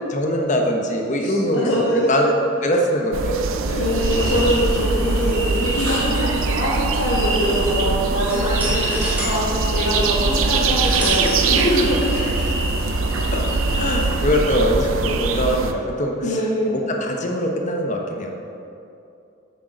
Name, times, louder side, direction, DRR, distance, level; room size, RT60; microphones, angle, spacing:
voice 1, 0.1-2.3 2.6-3.8 6.1-6.2 8.4-8.8 11.7-11.8 13.3-13.5 13.7-16.1 16.7-18.3, equal, 35° left, 1 dB, 1.1 m, -22 dB
voice 2, 1.2-2.1 3.7-12.4 16.2-16.8, equal, 85° left, -9 dB, 2.4 m, -23 dB
sound 1, 3.1-15.7, right 4 dB, 90° right, 0.6 m, -23 dB
sound 2, 3.8-14.1, equal, 65° right, 2.5 m, -29 dB
sound 3, 4.1-15.1, equal, 10° right, 2.4 m, -33 dB
8.9 x 6.9 x 6.5 m, 2.7 s
head